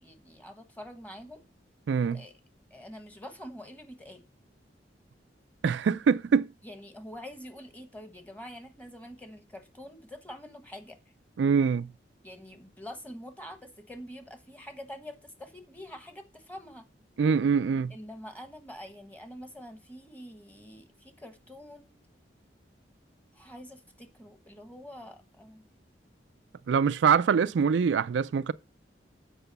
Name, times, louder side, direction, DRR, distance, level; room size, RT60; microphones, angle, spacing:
voice 1, 0.0-1.4 2.1-2.3 2.7-4.2 6.6-11.0 12.2-16.9 17.9-22.0 23.3-25.6, equal, 10° left, 1.2 m, -46 dB
voice 2, 1.9-2.2 5.6-6.5 11.4-11.9 17.2-17.9 26.7-28.5, right 6 dB, 85° right, 0.4 m, -24 dB
8.0 x 4.9 x 6.8 m
head